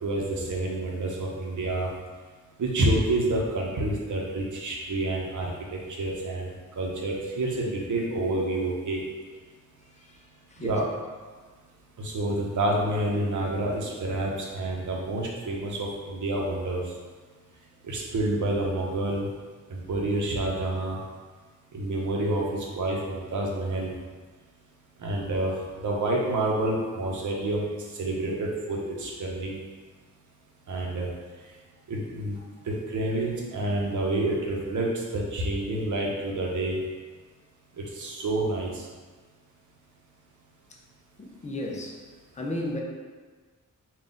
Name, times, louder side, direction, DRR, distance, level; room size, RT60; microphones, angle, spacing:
voice 1, 0.0-1.9 2.6-6.5 6.8-9.0 10.6-10.8 12.0-16.8 17.8-19.3 19.7-21.0 21.7-23.9 25.0-25.5 25.8-27.6 28.0-29.6 30.7-31.1 31.9-32.4 32.7-36.8 38.0-38.7, right 1 dB, 65° right, -2 dB, 0.8 m, -28 dB
voice 2, 41.2-42.0 42.4-42.8, left 1 dB, 20° left, -1 dB, 0.5 m, -33 dB
3.9 x 2.4 x 3.7 m, 1.5 s
wide cardioid pair, 140°, 33 cm